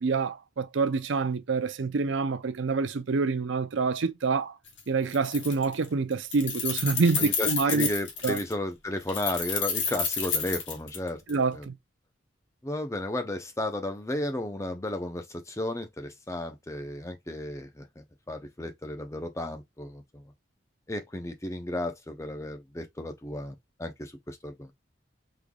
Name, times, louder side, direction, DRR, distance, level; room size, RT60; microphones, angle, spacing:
voice 1, 0.0-4.6 4.9-7.9 8.2-8.4 11.3-11.7, right 4 dB, 75° right, 0.5 m, -27 dB
Keys jangling, 4.7-4.8 5.1-5.9 6.1-8.5 9.1-11.3, left 6 dB, 70° left, 1.1 m, -30 dB
voice 2, 7.2-11.2 11.5-11.7 12.6-20.2 20.9-24.7, left 1 dB, 15° left, 0.5 m, -34 dB
3.7 x 3.2 x 2.2 m
head